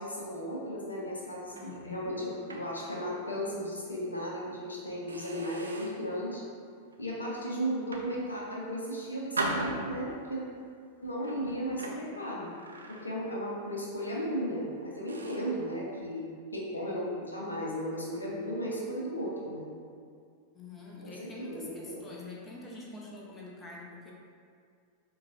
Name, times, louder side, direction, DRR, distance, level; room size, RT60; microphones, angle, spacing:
voice 1, 0.0-6.4 7.0-10.4 11.0-12.5 12.9-16.3 16.5-19.7 21.0-22.1, equal, 80° left, -3 dB, 0.6 m, -35 dB
voice 2, 1.5-2.2 20.5-24.1, left 2 dB, 15° left, -3 dB, 0.8 m, -45 dB
sound 1, 1.5-3.3 3.7-3.9 4.5-4.6 5.1-6.1 6.7-7.0 7.7-8.7 9.4-10.4 11.1-13.5 13.8-14.1 14.6-14.7 15.1-15.6, right 2 dB, 75° right, 0.4 m, -39 dB
6.6 x 2.3 x 2.5 m, 2.3 s
figure-of-eight pair, 90°, 0 cm